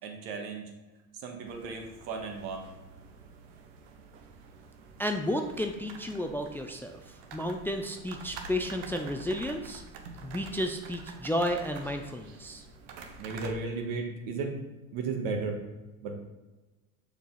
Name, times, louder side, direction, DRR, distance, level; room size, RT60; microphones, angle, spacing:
voice 1, 0.0-0.7 1.1-2.7 13.2-14.6 14.9-15.6 16.0-16.1, right 4 dB, 70° right, 2 dB, 1.6 m, -35 dB
sound 1, 1.4-13.5, right 4 dB, 90° right, 1.0 m, -48 dB
voice 2, 5.0-9.8 10.2-12.7, left 1 dB, 5° left, 4 dB, 0.3 m, -32 dB
6.8 x 4.6 x 4.0 m, 1.1 s
supercardioid pair, 120°, 36 cm